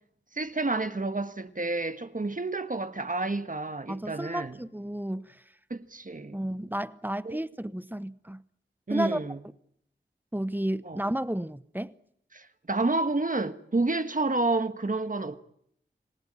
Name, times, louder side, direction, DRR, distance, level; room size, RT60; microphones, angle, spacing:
voice 1, 0.3-4.6 5.7-6.4 7.2-7.4 8.9-9.4 10.8-11.0 12.3-15.4, right 2 dB, 45° right, 1.5 m, -29 dB
voice 2, 3.9-5.4 6.3-8.4 8.9-9.2 10.3-11.9, right 1 dB, 10° right, 0.9 m, -32 dB
27.5 x 18.0 x 8.9 m
wide cardioid pair, 65°, 19 cm